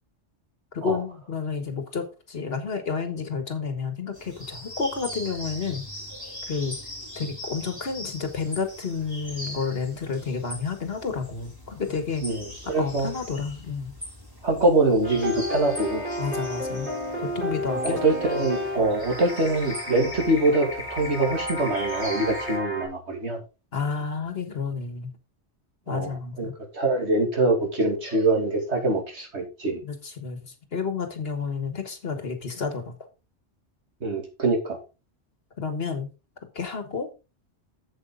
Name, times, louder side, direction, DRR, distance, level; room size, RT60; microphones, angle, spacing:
voice 1, 0.7-5.8 6.5-6.7 7.2-12.3 12.7-13.9 16.2-16.9 17.2-18.0 23.7-25.1 25.9-26.5 29.8-32.9 35.6-36.1 36.6-37.1, left 5 dB, 55° left, 7 dB, 1.6 m, -30 dB
sound 1, 4.1-22.6, left 1 dB, 20° right, 3.6 m, -40 dB
voice 2, 12.2-13.1 14.4-16.0 17.8-23.4 25.9-26.5 26.7-29.8 34.0-34.8, right 2 dB, 70° right, 1 dB, 2.9 m, -24 dB
sound 2, 15.0-22.9, equal, 45° right, 4.5 m, -32 dB
8.2 x 7.8 x 3.8 m, 0.30 s
omnidirectional pair, 1.2 m